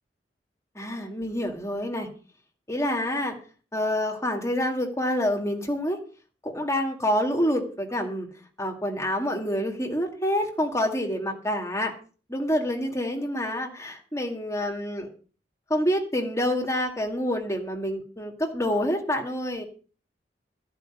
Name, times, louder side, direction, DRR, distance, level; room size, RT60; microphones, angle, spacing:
voice 1, 0.8-2.1 2.7-3.4 3.7-6.0 6.4-8.3 8.6-11.9 12.3-15.1 15.7-19.7, equal, 15° left, 1 dB, 2.2 m, -27 dB
14.0 x 5.4 x 9.2 m, 0.39 s
head